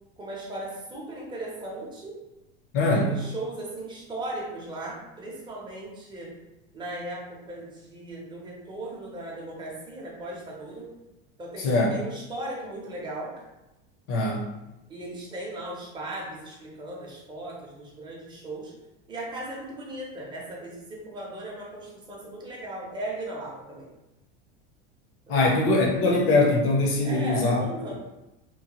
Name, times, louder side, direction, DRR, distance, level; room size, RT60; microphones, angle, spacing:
voice 1, 0.2-2.2 2.9-6.3 6.7-10.9 11.4-13.3 14.9-18.7 19.1-23.9 25.3-25.5 27.0-27.9, right 1 dB, 15° right, -4 dB, 0.7 m, -37 dB
voice 2, 2.7-3.1 11.6-12.0 14.1-14.4 25.3-27.6, left 2 dB, 45° left, 0 dB, 0.8 m, -22 dB
2.9 x 2.1 x 2.9 m, 0.97 s
supercardioid pair, 140°, 29 cm